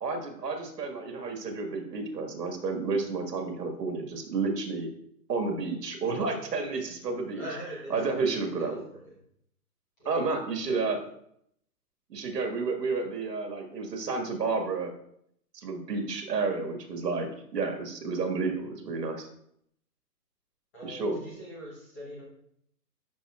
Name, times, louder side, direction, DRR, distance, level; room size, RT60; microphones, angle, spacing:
voice 1, 0.0-4.9 5.3-7.4 7.9-8.8 10.1-11.0 12.1-14.9 15.5-19.3 20.8-21.2, right 4 dB, 75° right, 3 dB, 1.8 m, -31 dB
voice 2, 7.3-9.2 10.0-10.2 10.7-11.0 20.7-22.2, equal, 10° left, -8 dB, 1.0 m, -42 dB
11.5 x 5.1 x 2.4 m, 0.71 s
hypercardioid pair, 180°, 49 cm